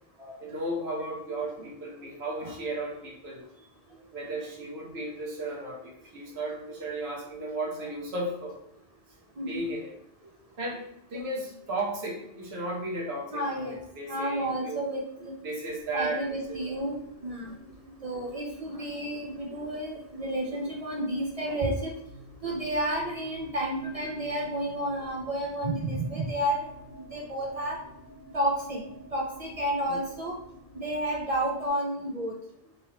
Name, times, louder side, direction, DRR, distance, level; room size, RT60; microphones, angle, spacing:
voice 1, 0.4-3.4 4.1-8.6 9.5-9.9 10.6-10.8 11.1-14.9 15.4-16.8 21.5-21.6 29.9-30.0, right 1 dB, 70° right, -1 dB, 1.1 m, -35 dB
voice 2, 13.3-13.8 14.1-15.3 15.9-17.5 18.0-21.9 22.4-26.7 27.0-27.8 28.3-28.8 29.1-30.4 30.7-32.3, right 1 dB, 50° right, -1 dB, 0.4 m, -31 dB
sound 1, 15.8-31.7, equal, 50° left, 0.8 m, -51 dB
3.2 x 2.8 x 2.8 m, 0.78 s
omnidirectional pair, 1.1 m